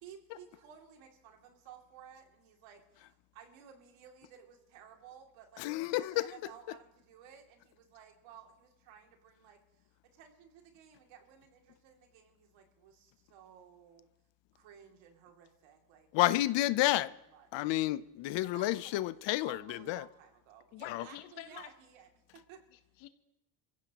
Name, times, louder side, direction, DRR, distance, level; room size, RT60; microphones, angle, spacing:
voice 1, 0.0-5.7 6.1-14.1 14.5-16.1 16.4-17.7 18.4-19.1 19.5-22.6, right 8 dB, 80° right, 2.7 m, -56 dB
voice 2, 5.6-6.3 16.1-17.1 17.5-20.0 20.9-21.0, left 16 dB, 70° left, 0.7 m, -30 dB
voice 3, 20.7-21.7 22.7-23.1, left 14 dB, 90° left, 1.4 m, -47 dB
25.0 x 15.5 x 3.0 m
cardioid pair, 95°, 46 cm